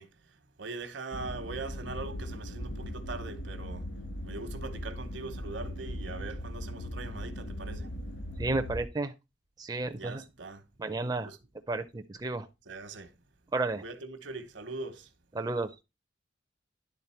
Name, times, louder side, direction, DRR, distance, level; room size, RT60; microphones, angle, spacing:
voice 1, 0.0-8.0 9.9-10.7 11.2-11.4 12.7-13.2 13.8-15.1, right 3 dB, 75° right, 1.1 m, -42 dB
sound 1, 1.1-8.9, equal, 70° left, 2.5 m, -39 dB
voice 2, 8.4-9.1 9.6-10.2 10.8-11.3 11.7-12.5 13.5-13.8 15.4-15.8, right 2 dB, 20° right, 0.5 m, -32 dB
10.5 x 3.8 x 4.3 m
head